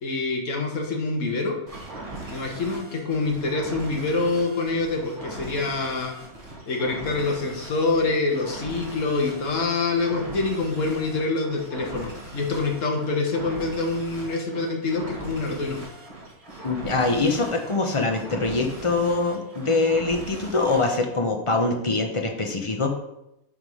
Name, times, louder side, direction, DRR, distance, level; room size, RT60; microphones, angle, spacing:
voice 1, 0.0-1.6 2.3-6.1 6.7-15.8, left 3 dB, 60° left, 2 dB, 1.6 m, -26 dB
sound 1, 1.7-21.0, right 2 dB, 25° right, 1.9 m, -40 dB
voice 2, 16.6-22.9, left 3 dB, 25° left, 3 dB, 0.8 m, -24 dB
9.4 x 3.7 x 4.9 m, 0.86 s
omnidirectional pair, 1.5 m